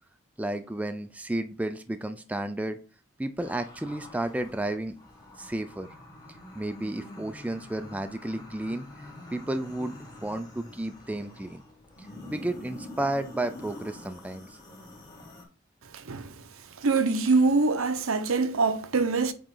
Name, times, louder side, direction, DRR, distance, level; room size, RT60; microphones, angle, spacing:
voice 1, 0.4-2.8 3.2-5.0 5.4-5.9 6.5-8.9 9.3-11.6 12.0-14.6, right 1 dB, 5° right, 0.3 m, -32 dB
sound 1, 3.4-15.4, left 1 dB, 20° left, 1.2 m, -46 dB
voice 2, 16.8-19.3, right 3 dB, 80° right, 0.7 m, -24 dB
8.5 x 3.1 x 3.8 m
head